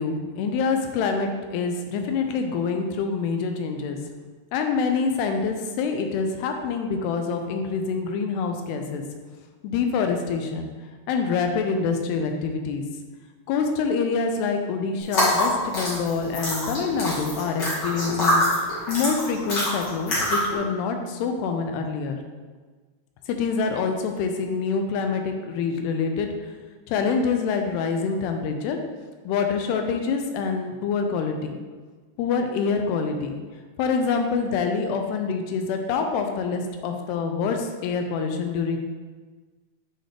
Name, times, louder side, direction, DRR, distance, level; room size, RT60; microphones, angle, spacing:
voice 1, 0.0-4.0 4.5-9.0 9.6-10.7 11.1-12.8 13.5-18.4 18.9-22.2 23.3-26.3 26.9-28.8 29.3-31.5 32.2-33.4 33.8-38.8, left 5 dB, 85° left, 5 dB, 2.6 m, -26 dB
sound 1, 15.0-20.6, left 1 dB, 45° left, 1.4 m, -25 dB
7.6 x 4.0 x 3.3 m, 1.4 s
omnidirectional pair, 4.8 m